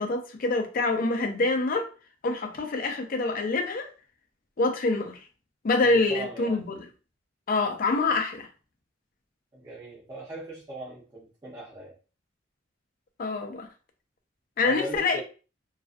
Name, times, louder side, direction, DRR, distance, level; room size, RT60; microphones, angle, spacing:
voice 1, 0.0-1.9 2.2-3.9 4.6-5.2 5.6-6.8 7.5-8.5 13.2-13.7 14.6-15.2, left 3 dB, 45° left, 0.4 m, -26 dB
voice 2, 5.8-6.6 9.5-11.9 14.6-15.2, right 1 dB, 20° right, 0.7 m, -40 dB
2.4 x 2.2 x 2.4 m
head